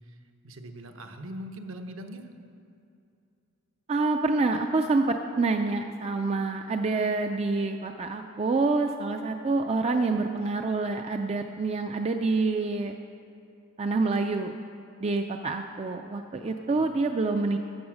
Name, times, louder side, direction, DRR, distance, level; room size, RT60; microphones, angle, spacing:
voice 1, 0.4-2.3 16.7-16.8, right 1 dB, 65° right, 5 dB, 0.9 m, -41 dB
voice 2, 3.9-12.9 13.8-14.6 15.0-17.6, right 3 dB, 30° right, 5 dB, 0.4 m, -27 dB
13.5 x 7.9 x 6.2 m, 2.6 s
head